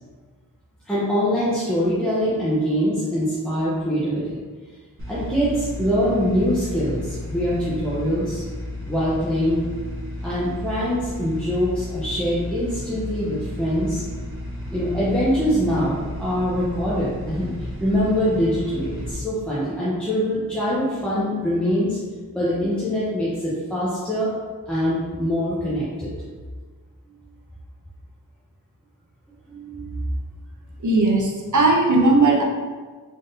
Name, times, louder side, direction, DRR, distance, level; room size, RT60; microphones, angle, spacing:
voice 1, 0.8-4.4 5.1-8.4 8.9-9.6 10.2-14.0 14.7-22.0 22.3-24.3 24.7-26.1 29.4-30.0, equal, 5° left, -10 dB, 0.9 m, -23 dB
sound 1, 5.0-19.1, left 1 dB, 35° right, 1.2 m, -33 dB
voice 2, 30.8-32.4, right 2 dB, 55° right, 0 dB, 0.7 m, -17 dB
3.7 x 3.6 x 2.6 m, 1.4 s
wide cardioid pair, 65°, 36 cm